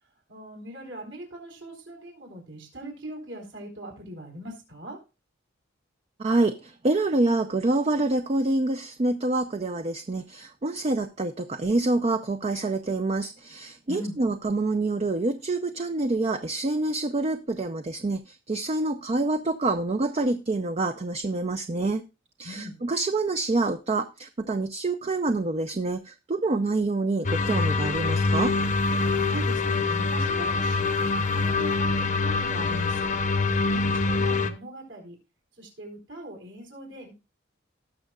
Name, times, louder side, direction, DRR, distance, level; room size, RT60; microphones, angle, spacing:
voice 1, 0.3-5.0 13.9-14.2 22.4-22.8 29.3-33.1 33.7-35.2 35.6-37.1, right 1 dB, 70° right, 1 dB, 4.0 m, -40 dB
voice 2, 6.2-22.0 22.4-28.5, right 2 dB, 35° right, 8 dB, 0.5 m, -27 dB
sound 1, 27.2-34.5, left 3 dB, 40° left, 0.8 m, -25 dB
18.5 x 6.4 x 2.3 m, 0.29 s
head